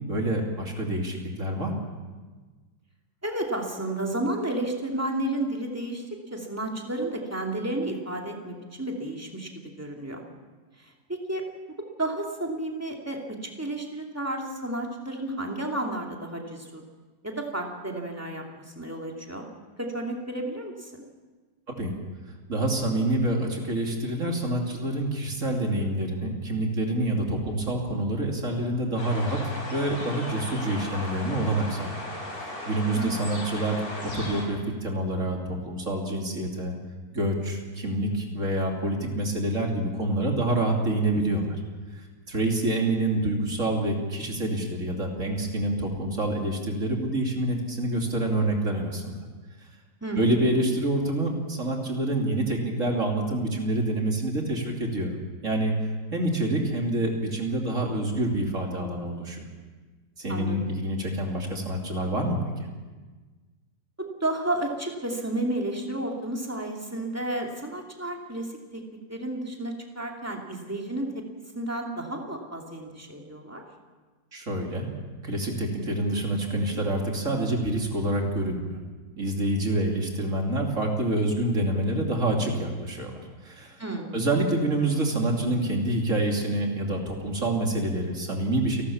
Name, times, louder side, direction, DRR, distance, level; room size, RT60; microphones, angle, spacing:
voice 1, 0.1-1.8 21.7-21.9 22.5-29.4 29.7-31.9 32.3-36.7 37.1-41.6 41.9-49.1 50.1-55.1 55.4-59.5 60.2-62.7 74.3-74.9 75.2-78.7 79.2-83.8 84.1-88.8, right 1 dB, 45° right, 1 dB, 3.2 m, -27 dB
voice 2, 3.2-6.0 6.3-10.2 11.1-11.4 12.0-16.8 17.2-19.4 19.8-21.0 33.0-33.4 50.0-50.4 60.3-60.7 64.0-71.2 71.5-73.6 83.8-84.2, right 1 dB, 10° right, 0 dB, 2.5 m, -32 dB
sound 1, 29.0-34.4, left 1 dB, 90° left, 5.5 m, -36 dB
29.5 x 12.5 x 7.3 m, 1.3 s
omnidirectional pair, 1.9 m